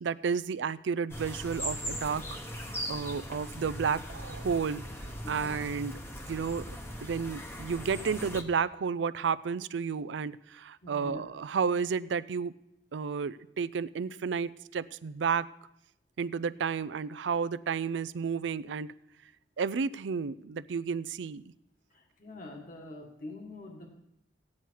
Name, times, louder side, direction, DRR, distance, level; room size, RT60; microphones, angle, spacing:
voice 1, 0.0-2.2 2.5-4.8 5.3-5.9 6.3-6.7 7.0-12.5 12.9-15.5 16.2-18.9 19.6-21.4, right 6 dB, 80° right, 17 dB, 0.4 m, -32 dB
sound 1, 1.1-8.4, equal, 15° left, 0.9 m, -39 dB
voice 2, 10.8-11.2 21.9-23.9, left 2 dB, 50° left, 1 dB, 1.7 m, -45 dB
15.5 x 9.7 x 4.6 m, 0.81 s
head